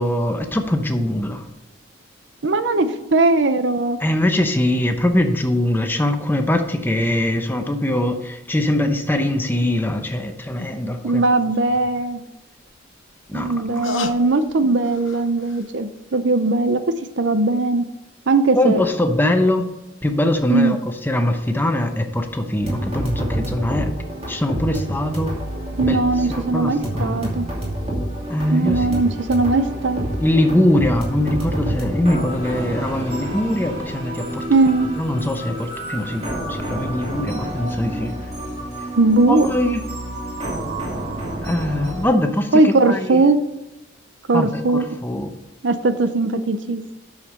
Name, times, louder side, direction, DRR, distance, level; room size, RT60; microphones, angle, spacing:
voice 1, 0.0-1.5 4.0-11.2 13.3-13.8 18.6-19.7 20.0-23.9 24.3-25.3 25.8-26.0 26.3-27.2 28.3-29.0 30.2-34.5 35.0-38.2 39.3-39.8 41.4-43.2 44.3-45.3, left 1 dB, 10° left, 5 dB, 0.8 m, -22 dB
voice 2, 2.4-4.0 11.0-12.2 13.3-16.8 17.2-17.8 18.3-18.8 20.5-20.8 25.8-27.5 28.5-30.1 34.5-34.9 39.0-39.5 42.5-43.4 44.3-44.8 45.6-46.9, right 3 dB, 65° right, 11 dB, 0.7 m, -19 dB
sound 1, 10.2-10.3 10.6-10.7 12.6-15.7 16.1-16.2, left 4 dB, 80° left, 0.8 m, -34 dB
sound 2, 22.6-42.1, right 1 dB, 30° right, 2.6 m, -28 dB
8.9 x 6.6 x 5.4 m, 0.95 s
head